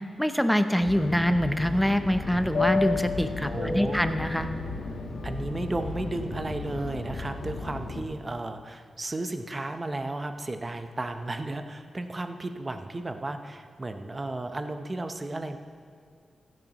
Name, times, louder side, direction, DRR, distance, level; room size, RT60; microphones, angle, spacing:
voice 1, 0.2-4.5, equal, ahead, 9 dB, 0.7 m, -25 dB
Fixed-wing aircraft airplane, 0.8-8.0, left 4 dB, 90° left, 1.3 m, -33 dB
voice 2, 3.5-4.0 5.2-15.6, right 2 dB, 30° right, 7 dB, 0.8 m, -34 dB
16.0 x 10.5 x 3.0 m, 2.2 s
cardioid pair, 70°, 0 cm